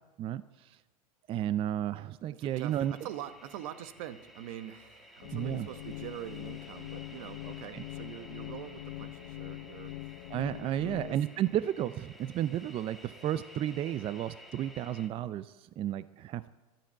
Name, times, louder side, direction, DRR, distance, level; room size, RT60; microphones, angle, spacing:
voice 1, 0.2-0.8 1.3-2.9 5.3-5.7 7.7-7.8 10.3-16.5, right 11 dB, 30° right, 15 dB, 0.4 m, -33 dB
voice 2, 2.3-10.1 10.6-11.2, right 12 dB, 65° right, 12 dB, 1.0 m, -44 dB
sound 1, 2.4-15.1, left 1 dB, ahead, 1.5 m, -53 dB
sound 2, 5.2-11.2, left 18 dB, 70° left, 0.6 m, -43 dB
12.0 x 11.5 x 7.4 m, 1.2 s
supercardioid pair, 120°, 19 cm